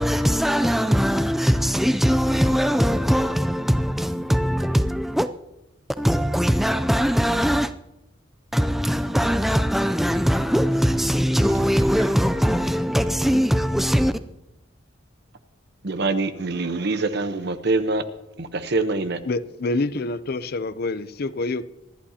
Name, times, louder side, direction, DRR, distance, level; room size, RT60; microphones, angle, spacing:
voice 1, 0.0-5.3 6.0-7.7 8.5-14.1, equal, ahead, 0.4 m, -21 dB
sound 1, 11.2-13.3, right 2 dB, 35° right, 1.9 m, -44 dB
voice 2, 15.8-18.0 18.4-19.2, right 3 dB, 60° right, 1.0 m, -24 dB
voice 3, 19.2-21.7, left 2 dB, 55° left, 0.6 m, -27 dB
25.5 x 11.5 x 2.9 m
head